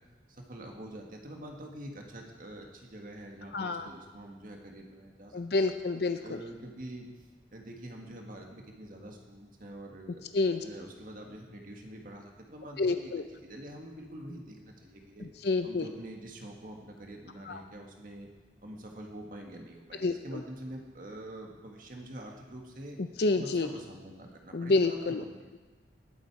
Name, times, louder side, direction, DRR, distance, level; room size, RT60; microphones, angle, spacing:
voice 1, 0.3-5.7 6.2-7.1 7.5-10.2 10.6-13.1 13.4-15.3 15.6-18.3 18.6-23.0 23.4-25.5, right 1 dB, 50° right, 1 dB, 1.8 m, -45 dB
voice 2, 3.5-3.9 5.3-6.4 10.3-10.6 12.8-13.2 15.2-15.9 17.5-17.6 20.0-20.4 23.2-23.7 24.5-25.2, left 3 dB, 65° left, 8 dB, 0.6 m, -28 dB
19.5 x 8.0 x 4.8 m, 1.3 s
head